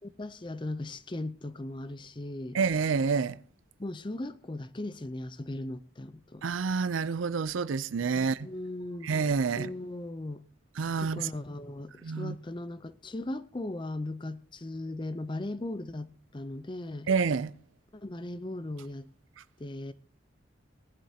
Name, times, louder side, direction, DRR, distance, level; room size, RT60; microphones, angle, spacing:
voice 1, 0.0-2.6 3.8-6.4 8.1-9.1 9.6-10.4 11.0-17.1 17.9-19.1 19.6-19.9, left 1 dB, 25° left, 0.6 m, -38 dB
voice 2, 2.5-3.4 6.4-8.5 9.0-9.7 10.8-11.3 12.0-12.4 17.1-17.5, right 5 dB, 90° right, 0.5 m, -28 dB
18.5 x 11.0 x 2.9 m
head